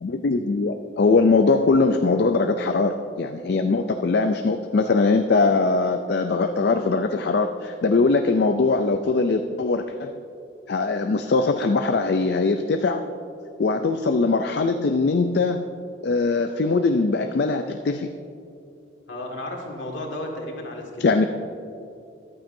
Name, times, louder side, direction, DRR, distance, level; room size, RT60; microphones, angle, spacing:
voice 1, 0.0-10.2 10.7-13.0 13.6-15.7 16.0-18.1 21.0-21.2, left 3 dB, 55° left, 7 dB, 0.4 m, -21 dB
voice 2, 19.1-21.3, left 1 dB, 70° left, 0 dB, 1.9 m, -33 dB
14.0 x 12.0 x 2.7 m, 2.6 s
head